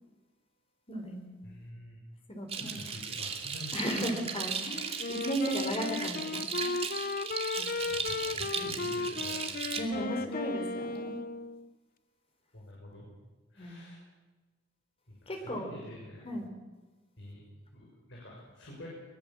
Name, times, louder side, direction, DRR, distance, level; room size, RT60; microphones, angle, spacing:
voice 1, 0.9-1.3 2.3-2.8 3.7-6.7 7.6-7.8 9.7-11.2 13.6-13.8 15.3-15.7 16.2-16.5, right 1 dB, 30° left, 4 dB, 3.7 m, -35 dB
voice 2, 1.4-2.0 2.6-4.0 7.7-10.1 12.5-13.1 13.5-14.0 15.1-16.3 17.2-18.9, left 1 dB, 65° left, -3 dB, 6.8 m, -47 dB
sound 1, 2.5-9.8, right 6 dB, 30° right, 2.5 m, -37 dB
Wind instrument woodwind instrument, 5.0-11.7, left 3 dB, 50° left, 0.8 m, -35 dB
23.0 x 22.0 x 7.5 m, 1.2 s
head